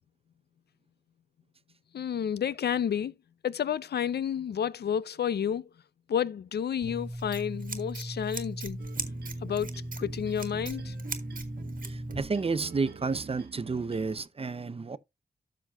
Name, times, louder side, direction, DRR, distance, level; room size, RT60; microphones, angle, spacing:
voice 1, 1.9-3.1 3.4-5.7 6.1-8.8 9.4-10.9, left 8 dB, 80° left, 0.4 m, -30 dB
Scissors, 6.8-12.2, right 1 dB, 55° right, 1.4 m, -37 dB
sound 1, 8.8-14.2, right 5 dB, 75° right, 1.1 m, -46 dB
voice 2, 11.9-15.0, right 4 dB, 35° right, 0.5 m, -31 dB
12.5 x 5.8 x 2.3 m
wide cardioid pair, 125°, 17 cm